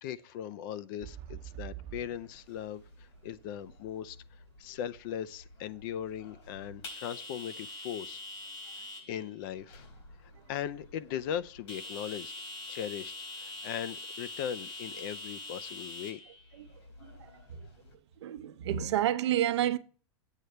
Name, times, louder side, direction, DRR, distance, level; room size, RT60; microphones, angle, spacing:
voice 1, 0.0-4.2 4.6-8.2 9.1-9.9 10.2-12.4 12.7-16.2, left 10 dB, 50° left, 0.5 m, -39 dB
sound 1, 1.0-4.9 5.4-5.5, right 12 dB, 40° right, 0.7 m, -46 dB
sound 2, 1.8-17.9, left 2 dB, 90° left, 3.8 m, -46 dB
voice 2, 18.2-19.8, right 11 dB, 85° right, 0.7 m, -29 dB
9.2 x 8.2 x 3.3 m
supercardioid pair, 150°, 14 cm